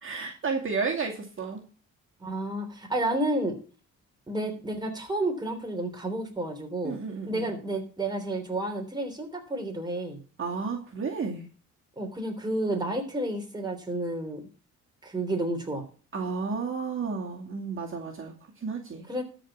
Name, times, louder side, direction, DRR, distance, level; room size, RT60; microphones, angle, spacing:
voice 1, 0.0-1.6 6.8-7.5 10.4-11.5 16.1-19.2, right 5 dB, 45° right, 0 dB, 2.5 m, -32 dB
voice 2, 2.2-3.6 4.3-7.0 7.3-10.2 12.0-14.4 15.0-15.8 19.1-19.2, right 1 dB, 15° right, 2 dB, 3.4 m, -31 dB
12.5 x 5.1 x 7.4 m, 0.38 s
cardioid pair, 90°, 30 cm